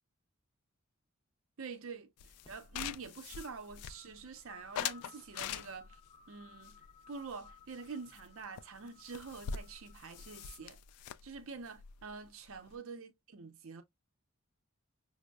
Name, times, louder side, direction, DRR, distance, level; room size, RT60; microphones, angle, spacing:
voice 1, 1.6-6.0 6.3-6.8 7.1-10.8 11.2-13.8, right 4 dB, 65° right, 0.6 m, -46 dB
sound 1, 2.2-4.3 4.7-6.1 6.6-7.9 8.2-8.3 8.6-8.7 8.9-12.7, left 8 dB, 90° left, 0.3 m, -43 dB
sound 2, 2.2-10.7, left 6 dB, 20° left, 0.5 m, -61 dB
6.0 x 2.0 x 2.2 m
head